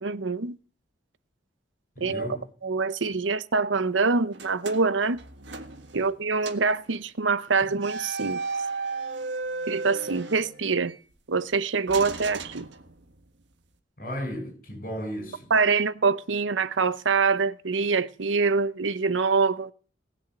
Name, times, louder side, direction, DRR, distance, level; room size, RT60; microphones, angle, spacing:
voice 1, 0.0-0.6 2.0-2.3 2.6-5.2 5.9-8.4 9.7-11.0 11.3-12.7 15.5-19.7, right 4 dB, 90° right, 0.8 m, -25 dB
voice 2, 2.0-2.4 14.0-15.5, equal, 50° left, 6.4 m, -34 dB
sound 1, 4.3-6.2 6.4-6.7 7.8-11.0 11.9-13.3, right 3 dB, 75° right, 1.5 m, -35 dB
18.5 x 7.3 x 7.9 m
head